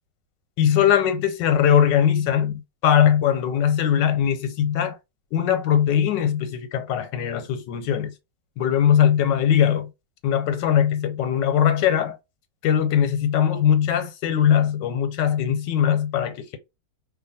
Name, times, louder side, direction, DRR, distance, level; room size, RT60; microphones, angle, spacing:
voice 1, 0.6-5.0 5.3-8.1 8.6-9.9 10.2-12.2 12.6-16.6, left 9 dB, 90° left, 1.4 m, -20 dB
2.8 x 2.5 x 4.0 m
omnidirectional pair, 1.9 m